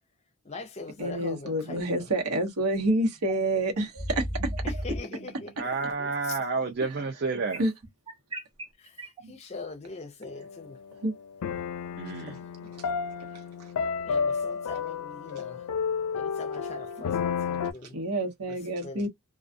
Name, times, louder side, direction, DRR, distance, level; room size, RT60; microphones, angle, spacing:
voice 1, 0.5-2.1 4.6-5.5 6.0-6.4 8.8-10.8 14.0-15.6 16.2-18.0 18.8-19.1, left 3 dB, 30° left, 0.5 m, -42 dB
voice 2, 1.0-4.3 6.8-7.0 7.6-7.7 11.0-11.1 13.3-13.7 17.8-19.1, right 1 dB, 85° right, 1.1 m, -28 dB
sound 1, 3.3-3.4 4.0-5.0 7.5-9.2, equal, 25° right, 0.9 m, -33 dB
voice 3, 5.6-7.6 9.2-9.4 12.0-12.3, right 4 dB, 45° right, 0.5 m, -30 dB
sound 2, 10.3-10.6 11.4-17.7, left 6 dB, 85° left, 0.4 m, -31 dB
2.4 x 2.3 x 2.5 m
head